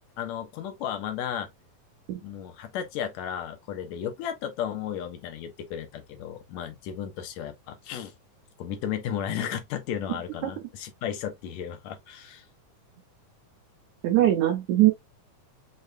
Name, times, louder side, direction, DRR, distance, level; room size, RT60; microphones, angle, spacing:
voice 1, 0.2-1.5 2.2-8.1 8.6-12.5, left 9 dB, 80° left, 1.7 m, -34 dB
voice 2, 14.0-14.9, right 14 dB, 75° right, 1.8 m, -21 dB
6.5 x 2.2 x 2.4 m
omnidirectional pair, 3.8 m